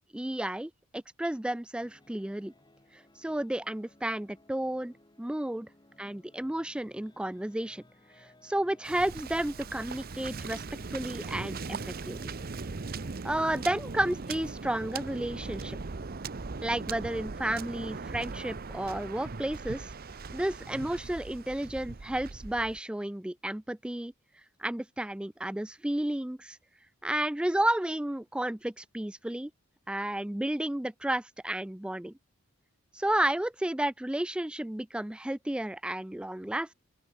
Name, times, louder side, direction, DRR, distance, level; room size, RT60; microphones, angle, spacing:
voice 1, 0.1-2.5 2.9-5.7 6.0-7.8 8.2-10.6 10.9-12.2 13.2-15.8 16.6-19.9 20.3-24.1 24.6-26.6 27.0-29.5 29.9-32.1 32.9-36.7, right 1 dB, 5° right, 0.3 m, -32 dB
sound 1, 1.8-12.5, left 1 dB, 20° left, 3.0 m, -61 dB
Waves surf, 8.8-22.8, right 4 dB, 45° right, 0.7 m, -39 dB
open air
head